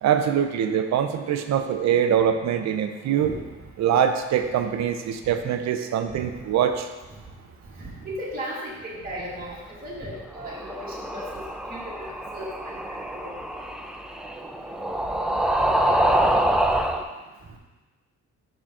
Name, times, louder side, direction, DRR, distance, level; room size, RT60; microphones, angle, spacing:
voice 1, 0.0-3.3 3.8-6.9, right 9 dB, 65° right, 7 dB, 0.6 m, -23 dB
voice 2, 7.8-11.4 11.7-13.3, equal, 30° right, -7 dB, 2.0 m, -36 dB
sound 1, 10.3-17.0, right 1 dB, ahead, 0.4 m, -25 dB
5.7 x 4.9 x 3.6 m, 1.2 s
cardioid pair, 90°, 30 cm